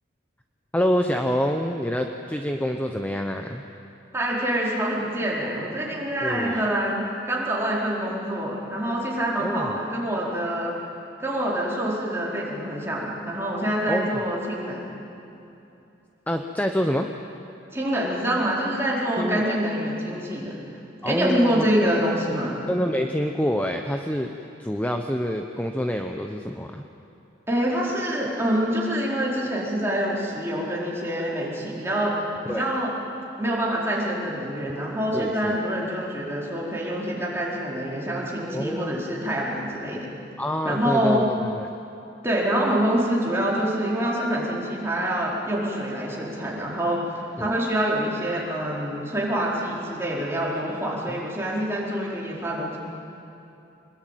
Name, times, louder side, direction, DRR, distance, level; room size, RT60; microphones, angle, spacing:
voice 1, 0.7-3.6 6.2-6.6 9.4-9.7 13.9-14.3 16.3-17.1 19.2-19.6 21.0-21.9 22.7-26.8 32.5-32.7 35.1-35.6 38.5-39.1 40.4-41.7 47.4-47.5 51.1-51.2, equal, 10° left, 4 dB, 0.8 m, -27 dB
voice 2, 4.1-10.8 11.2-15.0 17.7-20.6 21.0-22.6 27.5-32.2 32.5-32.9 33.4-40.1 40.6-41.3 42.2-47.1 47.4-52.8, right 1 dB, 15° right, -5 dB, 4.5 m, -26 dB
25.0 x 21.0 x 9.2 m, 2.8 s
head